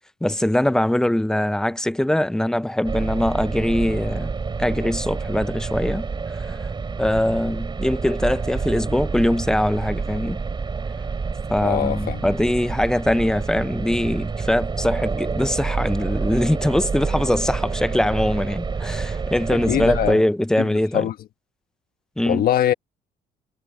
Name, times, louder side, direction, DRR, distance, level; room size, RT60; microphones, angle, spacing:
voice 1, 0.2-4.3 4.6-6.1 6.5-6.6 7.0-10.4 11.5-21.1 22.2-22.5, left 1 dB, 5° left, 0.5 m, -22 dB
sound 1, 2.8-20.1, right 4 dB, 25° right, 4.3 m, -28 dB
voice 2, 11.6-12.2 19.5-20.2 20.6-20.7 20.9-21.1 22.3-22.7, left 11 dB, 60° left, 1.4 m, -22 dB
cardioid pair, 110°, 17 cm